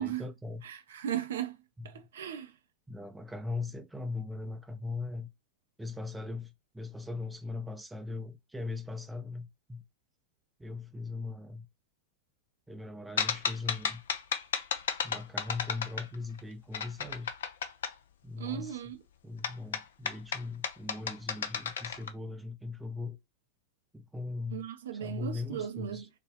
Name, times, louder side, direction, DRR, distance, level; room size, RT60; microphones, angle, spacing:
voice 1, 0.0-0.6 1.8-1.9 2.9-5.3 5.8-9.8 10.6-11.7 12.7-14.0 15.0-17.3 18.2-18.9 19.2-23.2 23.9-24.7 24.9-26.1, left 3 dB, 5° right, 0.5 m, -39 dB
voice 2, 0.6-1.6 1.8-2.5 18.4-19.0 24.5-26.0, right 10 dB, 60° right, 0.5 m, -36 dB
sound 1, 13.2-16.4 16.7-17.9 19.4-22.1, left 7 dB, 60° left, 0.4 m, -33 dB
3.9 x 2.2 x 3.3 m
figure-of-eight pair, 90°, 0 cm